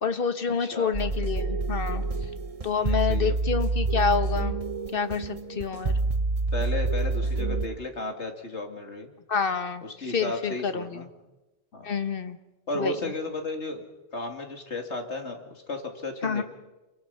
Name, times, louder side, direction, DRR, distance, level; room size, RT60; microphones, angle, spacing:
voice 1, 0.0-2.0 2.6-4.6 4.9-6.0 9.3-9.8 10.1-11.1 11.8-12.4 12.8-13.1 16.2-16.4, left 6 dB, 55° left, 9 dB, 1.4 m, -28 dB
voice 2, 0.6-0.9 2.6-3.3 5.5-6.2 6.5-9.1 9.8-11.1 11.7-11.9 12.7-13.8 14.1-16.4, left 2 dB, 85° left, 4 dB, 2.8 m, -34 dB
sound 1, 0.9-7.7, right 3 dB, 35° right, 0.9 m, -27 dB
28.5 x 23.5 x 5.7 m, 1.1 s
omnidirectional pair, 1.1 m